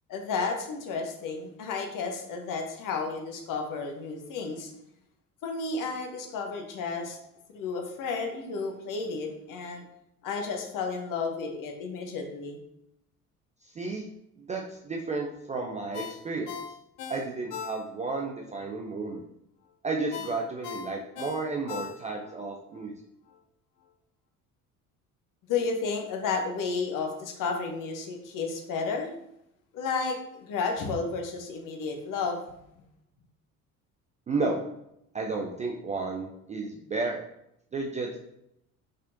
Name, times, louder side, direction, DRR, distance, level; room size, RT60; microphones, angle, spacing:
voice 1, 0.1-4.7 5.4-7.2 7.5-9.8 10.2-12.6 25.5-29.1 29.7-32.4, left 4 dB, 45° left, 4 dB, 0.9 m, -32 dB
voice 2, 14.4-16.5 17.1-19.2 19.8-22.9 34.3-34.6 35.1-37.2 37.7-38.2, right 3 dB, 15° right, 0 dB, 0.4 m, -32 dB
Ringtone, 15.9-18.2 18.6-18.7 20.1-22.4 22.7-22.9, left 7 dB, 75° left, 0.7 m, -39 dB
4.1 x 3.7 x 2.6 m, 0.78 s
figure-of-eight pair, 55°, 45 cm